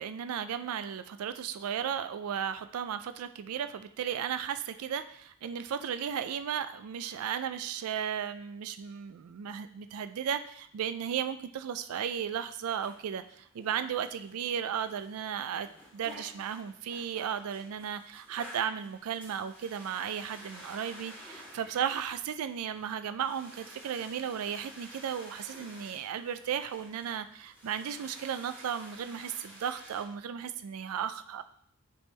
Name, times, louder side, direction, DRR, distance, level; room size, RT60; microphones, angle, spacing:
voice 1, 0.0-15.7 15.9-31.4, right 8 dB, 75° right, 10 dB, 0.4 m, -35 dB
sound 1, 12.4-30.0, equal, 5° right, 2.5 m, -52 dB
10.0 x 3.5 x 3.2 m, 0.69 s
head